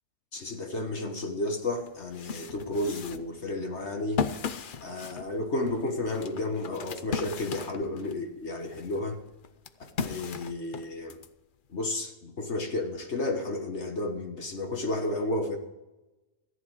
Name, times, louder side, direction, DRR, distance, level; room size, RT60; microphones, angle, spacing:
voice 1, 0.3-4.3 4.8-9.2 10.0-11.2 11.7-15.6, left 2 dB, 45° left, 4 dB, 1.6 m, -32 dB
sound 1, 1.3-1.4 1.9-8.2 8.7-11.3, left 6 dB, 80° left, 0.4 m, -36 dB
14.5 x 11.0 x 4.8 m, 1.0 s
omnidirectional pair, 1.7 m